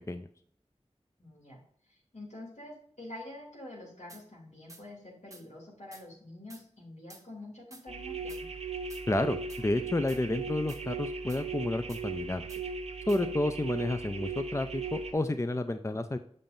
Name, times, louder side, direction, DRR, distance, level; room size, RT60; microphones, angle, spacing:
voice 1, 1.2-8.4, left 1 dB, 75° left, -3 dB, 2.7 m, -47 dB
sound 1, 4.1-4.2 4.7-4.8 5.3-5.4 5.9-6.1 6.5-6.6 7.1-7.2 7.7-7.8 8.3-8.4 8.9-9.1 9.5-9.6 10.1-10.2 10.7-10.8 11.3-11.4 11.9-12.0 12.5-12.6 13.1-13.2, right 2 dB, 25° right, 1.1 m, -51 dB
sound 2, 7.9-15.1, right 4 dB, 65° right, 0.8 m, -38 dB
voice 2, 9.1-12.4 13.1-16.2, left 2 dB, 25° left, 9 dB, 0.4 m, -30 dB
7.1 x 6.6 x 2.5 m, 0.63 s
wide cardioid pair, 40°, 12 cm